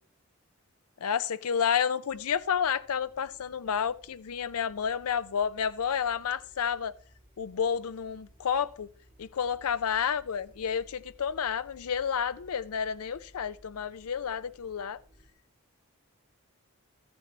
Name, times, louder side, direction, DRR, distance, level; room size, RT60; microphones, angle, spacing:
voice 1, 1.0-6.9 7.4-8.9 9.2-15.0, left 7 dB, 80° left, 0.5 m, -30 dB
sound 1, 2.1-15.3, equal, 35° right, 2.2 m, -59 dB
13.5 x 7.0 x 4.1 m
head